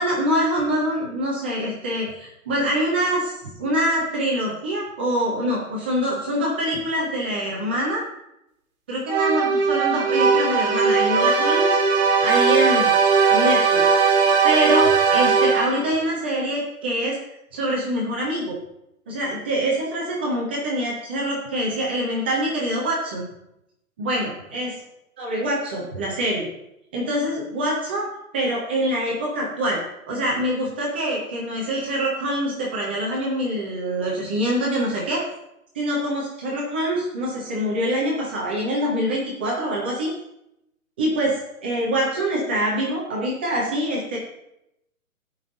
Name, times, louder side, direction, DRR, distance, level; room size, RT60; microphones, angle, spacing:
voice 1, 0.0-8.0 8.9-11.8 12.2-12.9 13.3-14.2 14.4-17.2 17.5-18.5 19.1-23.2 24.0-24.7 25.2-26.5 26.9-28.1 28.3-29.8 30.1-35.2 35.7-40.1 41.0-44.2, equal, 10° right, -4 dB, 0.5 m, -25 dB
sound 1, 9.1-15.9, right 5 dB, 30° right, 2.0 m, -18 dB
15.5 x 5.4 x 3.8 m, 0.83 s
hypercardioid pair, 150°, 43 cm